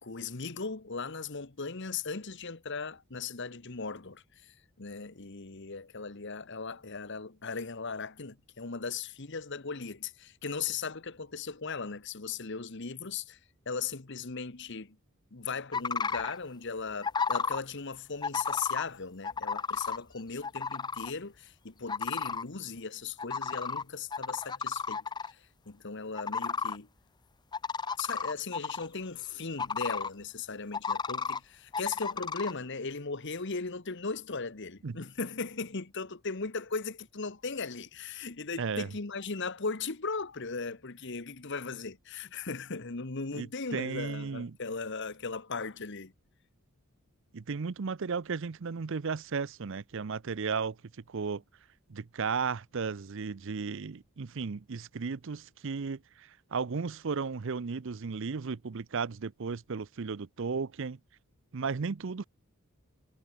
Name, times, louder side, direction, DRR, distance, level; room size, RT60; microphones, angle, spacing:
voice 1, 0.0-13.4 13.7-15.0 15.3-26.9 28.0-46.1, left 4 dB, 55° left, 1.3 m, -38 dB
sound 1, 15.7-16.4 17.0-17.6 18.2-18.8 19.2-20.0 20.4-21.1 21.9-22.4 23.2-23.8 24.1-25.3 26.1-26.8 27.5-28.9 29.6-30.1 30.7-31.4 31.7-32.5, left 5 dB, 20° left, 0.4 m, -32 dB
voice 2, 38.6-38.9 43.3-43.5 43.7-44.6 47.3-50.8 51.1-51.4 51.9-61.0 61.5-62.2, right 5 dB, 60° right, 0.6 m, -34 dB
head